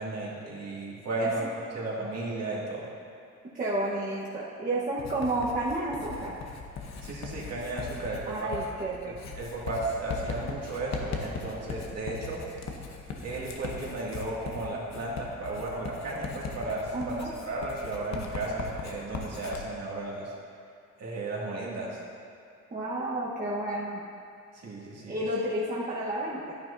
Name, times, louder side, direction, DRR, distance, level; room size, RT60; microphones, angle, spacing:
voice 1, 0.0-1.4 1.7-2.8 7.0-8.5 9.4-12.4 13.2-17.1 17.5-20.3 21.0-22.0 24.5-25.2, right 2 dB, 55° right, -5 dB, 2.3 m, -34 dB
voice 2, 3.5-6.3 8.3-9.1 16.9-17.3 22.7-24.0 25.1-26.5, right 1 dB, 30° right, -7 dB, 1.3 m, -31 dB
Writing, 5.0-19.6, left 4 dB, 65° left, 1.1 m, -39 dB
10.5 x 9.4 x 2.7 m, 2.4 s
cardioid pair, 90°, 30 cm